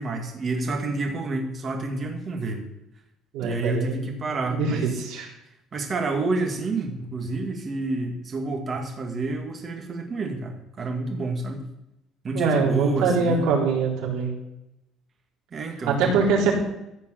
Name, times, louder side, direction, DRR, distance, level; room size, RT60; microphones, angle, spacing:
voice 1, 0.0-2.6 3.4-5.0 5.7-11.6 12.2-13.5 15.5-16.1, right 3 dB, 30° right, 3 dB, 2.2 m, -29 dB
voice 2, 3.3-4.1 4.5-5.3 12.3-14.4 15.9-16.6, right 4 dB, 85° right, -3 dB, 4.1 m, -23 dB
15.0 x 5.2 x 8.1 m, 0.86 s
cardioid pair, 150°, 0 cm